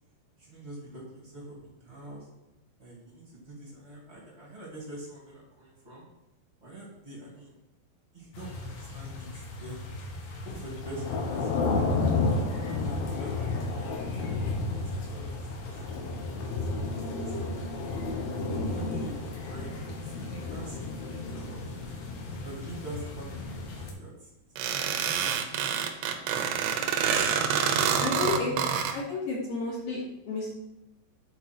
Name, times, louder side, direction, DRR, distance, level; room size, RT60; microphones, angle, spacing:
voice 1, 0.3-2.3 2.8-6.0 6.6-7.5 8.1-9.9 10.4-12.1 12.4-14.0 14.6-16.9 17.2-17.7 18.6-20.1 20.5-21.6 22.4-24.3 24.8-25.9 26.2-26.9 27.6-28.2, right 1 dB, 35° right, -5 dB, 1.1 m, -45 dB
sound 1, 8.3-23.9, left 3 dB, 85° left, 4.1 m, -32 dB
sound 2, 24.6-28.9, right 7 dB, 80° right, 2.6 m, -27 dB
voice 2, 28.0-28.5 28.9-30.5, left 3 dB, 60° left, -6 dB, 2.7 m, -31 dB
9.3 x 4.6 x 6.0 m, 0.91 s
omnidirectional pair, 5.6 m